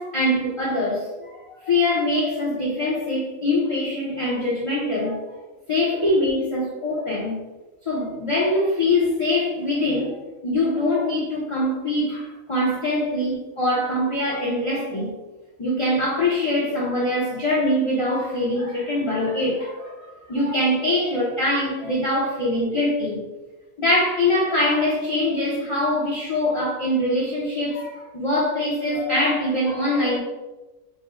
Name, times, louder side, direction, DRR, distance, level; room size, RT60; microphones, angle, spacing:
voice 1, 0.0-5.3 5.7-7.4 7.9-10.1 10.4-15.1 15.6-19.9 20.3-23.2 23.8-30.2, left 1 dB, 35° left, -6 dB, 0.5 m, -23 dB
4.3 x 2.1 x 3.6 m, 1.1 s
omnidirectional pair, 1.5 m